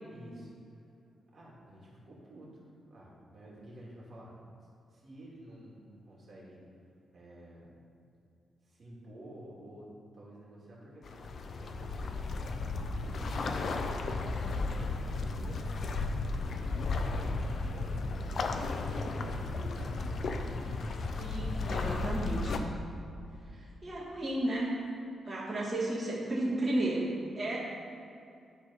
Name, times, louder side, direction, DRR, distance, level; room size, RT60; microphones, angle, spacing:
voice 1, 0.1-0.5 1.3-4.4 4.9-6.6 7.1-7.8 8.6-15.9 16.2-20.0 20.2-20.7, right 1 dB, 45° right, -5 dB, 2.2 m, -51 dB
sound 1, 11.0-22.6, left 3 dB, 50° left, 0.6 m, -34 dB
voice 2, 21.2-22.6 23.5-24.7 25.2-27.6, right 1 dB, 20° right, -9 dB, 1.8 m, -33 dB
11.5 x 4.0 x 5.6 m, 2.5 s
wide cardioid pair, 140°, 0 cm